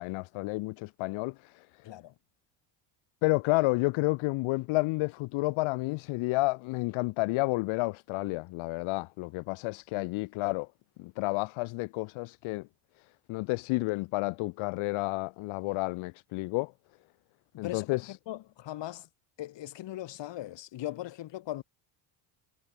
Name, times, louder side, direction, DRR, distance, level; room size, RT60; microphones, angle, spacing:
voice 1, 0.0-1.6 3.2-10.7 11.0-12.7 13.3-16.7 17.6-18.2, left 23 dB, 80° left, 1.5 m, -30 dB
voice 2, 17.5-17.9 18.3-19.1 19.4-21.6, left 14 dB, 65° left, 3.7 m, -39 dB
cardioid pair, 105°, 48 cm